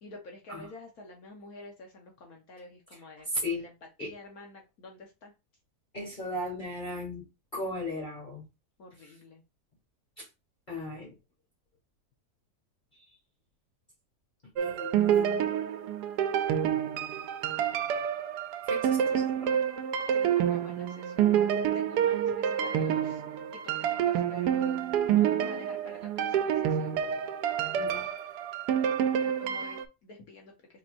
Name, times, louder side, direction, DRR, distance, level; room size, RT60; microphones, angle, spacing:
voice 1, 0.0-3.7 4.0-5.3 8.8-9.4 20.1-21.4 21.7-24.8 25.2-27.0 29.2-30.8, left 2 dB, 65° left, 1.4 m, -49 dB
voice 2, 3.3-3.7 4.0-4.1 5.9-8.5 10.2-10.3 10.7-11.2 12.9-13.2 14.6-15.5 18.6-19.7 27.7-28.1, left 1 dB, 30° left, 1.8 m, -37 dB
sound 1, 14.6-29.9, right 9 dB, 90° right, 1.2 m, -28 dB
4.4 x 4.1 x 2.5 m
omnidirectional pair, 1.7 m